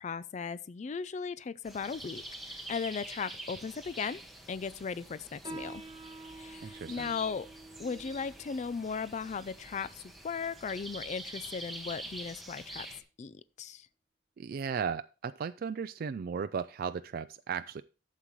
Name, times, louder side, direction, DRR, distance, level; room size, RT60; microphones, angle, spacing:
voice 1, 0.0-4.2 4.5-5.8 6.3-7.5 7.8-12.9 13.2-13.9, left 5 dB, 40° left, 0.4 m, -37 dB
sound 1, 1.6-13.0, right 1 dB, ahead, 1.6 m, -46 dB
Piano, 5.4-12.5, right 2 dB, 25° right, 1.4 m, -50 dB
voice 2, 6.6-7.1 14.4-17.8, right 6 dB, 55° right, 0.3 m, -36 dB
12.0 x 7.5 x 3.1 m
head